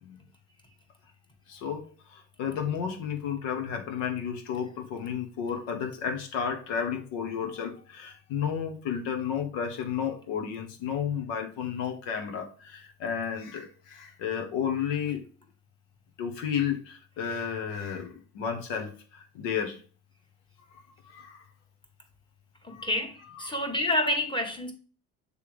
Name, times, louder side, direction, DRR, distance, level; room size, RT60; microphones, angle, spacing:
voice 1, 1.5-15.3 16.2-19.8 20.7-21.4 22.7-22.9 23.4-23.6, left 7 dB, 75° left, 1.3 m, -32 dB
voice 2, 22.6-24.7, left 1 dB, 10° left, 1.5 m, -28 dB
6.7 x 3.4 x 4.9 m
hypercardioid pair, 65°, 45 cm